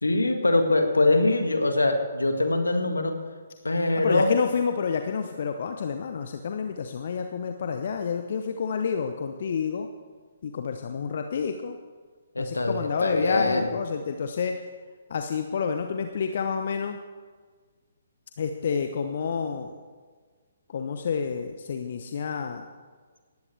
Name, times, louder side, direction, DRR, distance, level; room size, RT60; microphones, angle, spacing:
voice 1, 0.0-3.2 3.6-4.3 12.4-13.7, left 2 dB, 75° left, 6 dB, 1.9 m, -23 dB
voice 2, 3.9-9.9 10.4-11.8 12.4-14.6 15.1-17.0 18.4-19.7 20.7-22.6, left 6 dB, 50° left, 7 dB, 0.9 m, -29 dB
19.0 x 15.5 x 3.4 m, 1.5 s
figure-of-eight pair, 130°, 0 cm